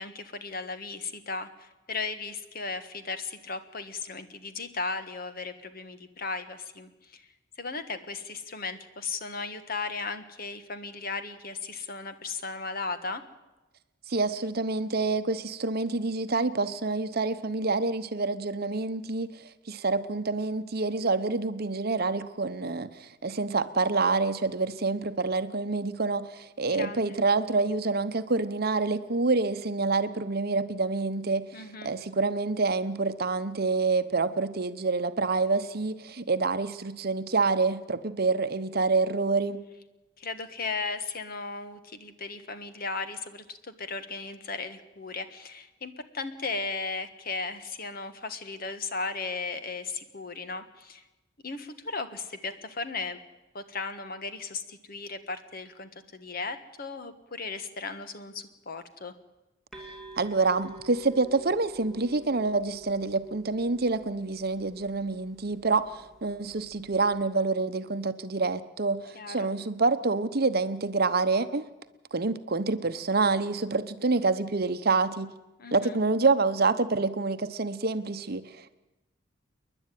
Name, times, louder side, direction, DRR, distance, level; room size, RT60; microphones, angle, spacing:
voice 1, 0.0-7.3 7.6-13.2 26.7-27.1 31.5-31.9 40.2-51.0 51.4-53.2 53.5-59.2 69.1-69.5 75.6-76.0, left 4 dB, 50° left, 1.5 m, -36 dB
voice 2, 14.1-39.6 60.2-71.6 72.1-75.3 75.7-78.7, right 3 dB, 50° right, 0.9 m, -27 dB
sound 1, 59.7-67.2, right 1 dB, ahead, 2.6 m, -49 dB
28.5 x 11.0 x 9.2 m
head